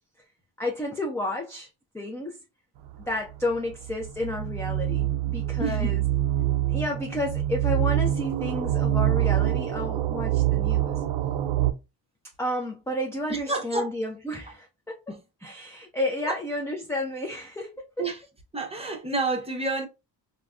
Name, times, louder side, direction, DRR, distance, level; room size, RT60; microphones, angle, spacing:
voice 1, 0.6-1.7 1.9-2.4 3.1-6.0 6.7-11.0 12.4-15.0 15.4-18.1, left 1 dB, 5° left, 0.3 m, -31 dB
sound 1, 2.9-11.7, right 13 dB, 65° right, 0.5 m, -25 dB
voice 2, 5.6-6.0 13.3-13.9 15.1-15.2 16.2-16.4 18.0-18.2 18.5-19.9, right 2 dB, 15° right, 0.7 m, -29 dB
3.3 x 2.1 x 2.4 m
cardioid pair, 95°, 45 cm